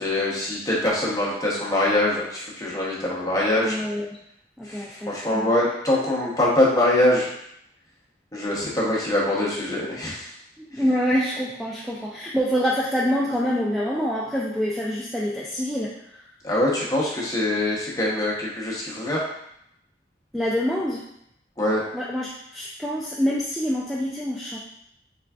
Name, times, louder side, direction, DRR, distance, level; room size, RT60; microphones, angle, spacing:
voice 1, 0.0-3.8 4.6-7.3 8.3-10.3 10.7-10.9 16.4-19.2 21.6-21.8, left 1 dB, 20° left, -5 dB, 0.8 m, -23 dB
voice 2, 3.5-4.2 4.6-5.5 10.6-16.2 20.3-21.0 21.9-24.6, equal, ahead, -6 dB, 0.3 m, -26 dB
3.7 x 3.4 x 2.3 m, 0.75 s
head